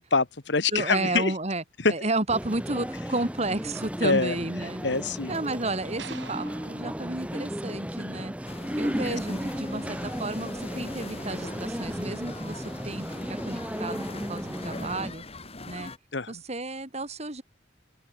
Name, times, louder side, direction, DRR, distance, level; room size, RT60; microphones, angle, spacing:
voice 1, 0.0-1.3 1.8-1.9 4.0-4.3 4.8-5.3 9.0-9.4 16.1-16.3, left 4 dB, 65° left, 1.5 m, -25 dB
voice 2, 0.7-1.6 1.9-4.8 5.3-8.3 8.8-15.2 15.7-15.9 16.3-17.4, right 2 dB, 35° right, 3.6 m, -32 dB
sound 1, 2.3-15.1, equal, 5° right, 3.7 m, -34 dB
sound 2, 6.0-8.3, right 5 dB, 70° right, 5.8 m, -46 dB
sound 3, 8.5-16.0, left 2 dB, 30° left, 4.9 m, -42 dB
open air
head